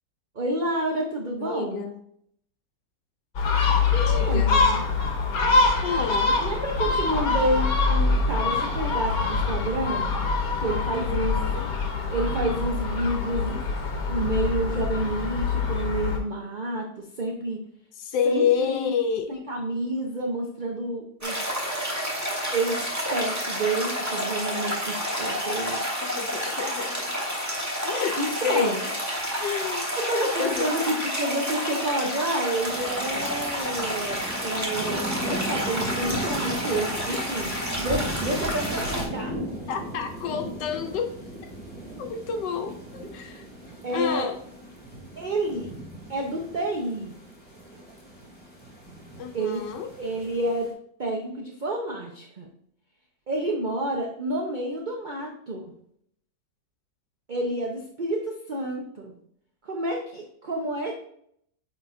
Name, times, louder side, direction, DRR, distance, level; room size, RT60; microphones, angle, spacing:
voice 1, 0.3-1.8 3.9-4.8 6.4-10.1 10.6-11.3 12.1-13.6 14.1-17.6 18.2-18.9 19.3-21.4 22.5-22.8 23.1-26.0 28.2-28.8 30.0-39.3 43.8-44.3 45.2-45.7 46.1-47.1 49.3-49.6 50.0-50.7 51.0-52.5 53.3-55.7 57.3-59.1 59.6-61.0, right 1 dB, 45° right, 0 dB, 0.6 m, -29 dB
voice 2, 1.4-2.0 4.1-4.6 5.8-6.4 10.9-11.7 18.0-19.4 26.0-27.2 27.8-28.9 29.4-29.9 30.4-30.9 39.7-41.2 42.0-43.4 43.9-44.4 49.2-49.9, left 7 dB, 85° left, 5 dB, 1.3 m, -29 dB
Gull seagull, 3.4-16.2, left 4 dB, 60° left, 1.4 m, -24 dB
sound 1, 21.2-39.0, equal, 10° right, 1.2 m, -29 dB
sound 2, 32.6-50.7, right 1 dB, 5° left, 1.6 m, -38 dB
9.1 x 4.3 x 2.6 m, 0.67 s
omnidirectional pair, 1.8 m